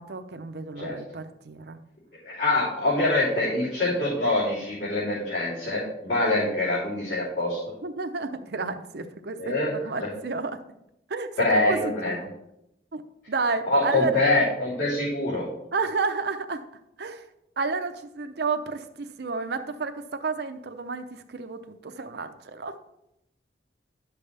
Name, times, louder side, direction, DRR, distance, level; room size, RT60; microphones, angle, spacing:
voice 1, 0.0-1.8 6.3-6.4 7.8-10.6 11.1-12.3 12.9-13.0 13.3-14.2 15.7-16.6 17.0-17.2 17.6-22.8, right 4 dB, 65° right, 8 dB, 0.7 m, -31 dB
voice 2, 2.2-7.6 9.4-9.7 10.0-10.1 11.4-12.2 13.7-15.5, left 2 dB, 80° left, -11 dB, 3.5 m, -24 dB
11.0 x 6.9 x 3.4 m, 0.83 s
head